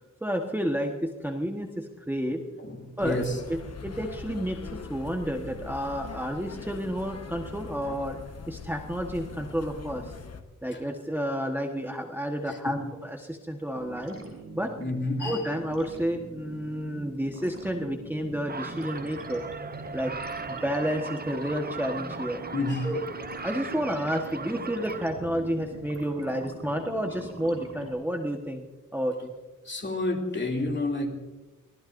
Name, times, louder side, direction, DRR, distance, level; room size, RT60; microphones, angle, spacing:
voice 1, 0.0-2.4 3.0-3.2 3.5-8.2 8.5-10.1 10.6-14.2 14.5-14.7 15.2-19.4 19.9-20.1 20.5-22.4 22.8-23.0 23.4-28.6 28.9-29.3, equal, 5° right, 2 dB, 1.3 m, -30 dB
sound 1, 3.0-10.4, left 5 dB, 50° left, 1.2 m, -42 dB
voice 2, 3.0-3.3 12.5-12.9 14.8-15.4 22.5-22.9 29.6-31.2, left 2 dB, 35° left, 1 dB, 2.9 m, -29 dB
sound 2, 13.7-27.9, right 2 dB, 45° right, 6.8 m, -43 dB
sound 3, 18.5-25.1, right 4 dB, 30° right, 0.8 m, -38 dB
25.0 x 18.5 x 2.6 m, 1.1 s
wide cardioid pair, 110°, 32 cm